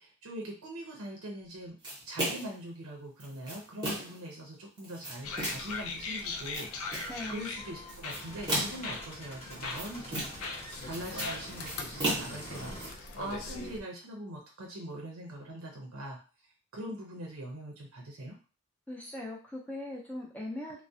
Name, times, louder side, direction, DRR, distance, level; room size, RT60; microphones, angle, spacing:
voice 1, 0.0-1.7 2.0-6.7 7.3-10.6 10.8-16.2 16.7-18.4, right 1 dB, 75° right, 0 dB, 0.6 m, -42 dB
sound 1, 1.8-2.6 3.2-4.2 4.8-5.8 6.3-7.2 7.9-8.9 9.5-10.5 10.8-12.9, right 1 dB, 20° right, 0.8 m, -35 dB
sound 2, 5.2-13.8, left 3 dB, 80° left, 0.4 m, -40 dB
sound 3, 5.2-12.9, equal, 30° left, 1.0 m, -49 dB
voice 2, 7.1-7.5 18.9-20.8, left 1 dB, 5° left, -2 dB, 0.5 m, -40 dB
2.3 x 2.1 x 2.6 m, 0.35 s
head